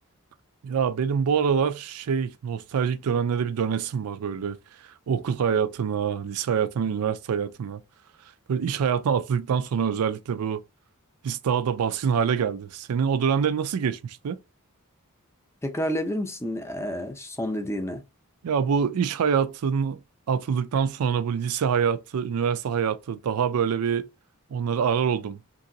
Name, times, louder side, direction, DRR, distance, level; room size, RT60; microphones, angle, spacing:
voice 1, 0.6-4.6 4.8-7.8 8.5-10.6 11.2-14.4 18.4-20.0 20.3-24.1 24.5-25.4, right 7 dB, 75° right, 0.4 m, -25 dB
voice 2, 15.6-18.0, equal, 10° left, 0.5 m, -29 dB
2.9 x 2.7 x 2.6 m
head